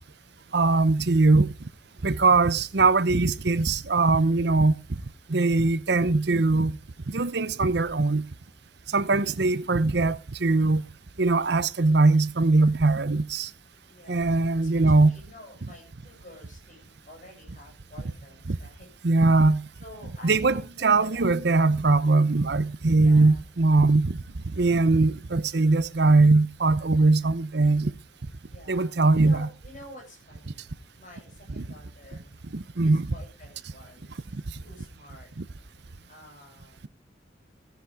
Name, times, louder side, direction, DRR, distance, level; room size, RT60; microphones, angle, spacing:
voice 1, 0.5-1.5 2.0-4.7 5.3-6.8 7.1-8.2 8.9-10.9 11.2-13.5 14.1-15.1 18.5-18.6 19.0-19.6 20.2-24.2 24.6-27.9 28.7-29.5 31.6-31.7 32.5-33.1 35.4-35.5, right 3 dB, 60° right, 0.8 m, -21 dB
voice 2, 9.0-9.4 13.9-14.7 15.0-18.9 19.2-19.3 19.8-21.3 22.9-23.4 28.4-32.4 32.8-35.3 36.1-36.9, left 1 dB, 40° left, 7.7 m, -49 dB
15.0 x 10.0 x 3.6 m
head